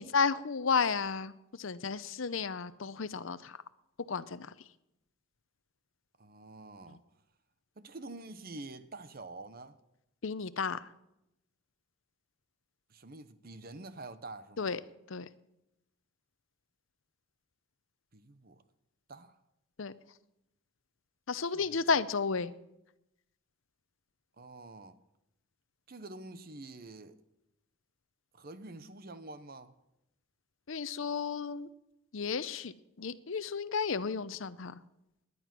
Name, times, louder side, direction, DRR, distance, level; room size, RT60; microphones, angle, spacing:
voice 1, 0.0-3.6 4.1-4.5 10.2-10.8 14.6-14.8 15.1-15.3 19.8-19.9 21.3-22.5 30.7-31.7 32.1-32.7 33.0-34.8, left 5 dB, 70° left, 0.7 m, -32 dB
voice 2, 6.2-7.0 7.8-9.8 12.9-14.8 18.1-18.6 19.1-19.4 21.5-21.8 24.4-25.0 25.9-27.2 28.3-29.7, right 2 dB, 45° right, 0.9 m, -47 dB
18.5 x 11.0 x 6.1 m
head